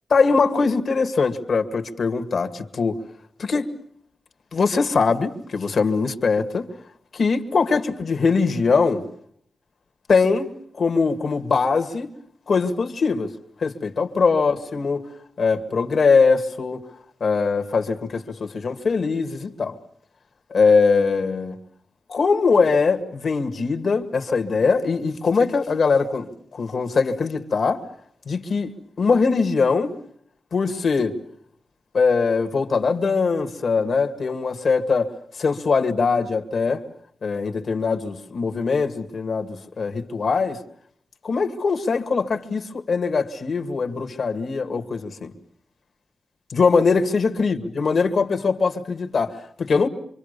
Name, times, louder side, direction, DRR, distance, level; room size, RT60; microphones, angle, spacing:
voice 1, 0.1-3.0 3.4-3.7 4.5-6.7 7.1-9.1 10.1-10.5 10.7-12.1 12.5-13.3 13.6-15.0 15.4-16.8 17.2-19.8 20.5-21.6 22.1-27.8 28.3-29.9 30.5-31.2 31.9-36.8 37.2-40.6 41.2-45.3 46.5-49.9, left 4 dB, 65° left, 2.0 m, -21 dB
26.0 x 25.0 x 6.8 m
wide cardioid pair, 100°, 0 cm